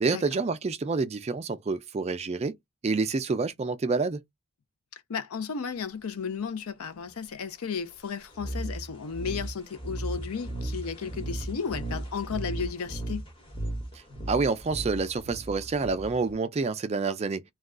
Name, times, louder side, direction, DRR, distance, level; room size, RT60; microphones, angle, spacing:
voice 1, 0.0-2.5 2.8-4.2 14.3-17.4, right 4 dB, 30° right, 0.3 m, -28 dB
voice 2, 4.9-13.2, left 6 dB, 75° left, 0.5 m, -34 dB
sound 1, 8.3-16.3, right 1 dB, 20° left, 1.0 m, -36 dB
2.3 x 2.2 x 3.6 m
head